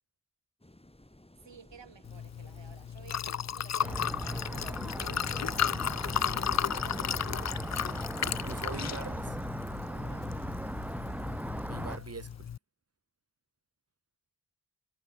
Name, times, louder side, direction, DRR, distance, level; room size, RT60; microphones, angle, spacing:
sound 1, 0.6-12.4, left 1 dB, 15° left, 5.8 m, -56 dB
voice 1, 1.4-8.8 9.9-10.4, right 6 dB, 75° right, 5.1 m, -54 dB
Liquid, 2.0-12.6, left 8 dB, 40° left, 0.5 m, -34 dB
sound 2, 3.8-12.0, equal, 5° right, 1.1 m, -38 dB
voice 2, 8.2-9.4 11.6-12.5, right 4 dB, 35° right, 1.5 m, -43 dB
cardioid pair, 50°, 44 cm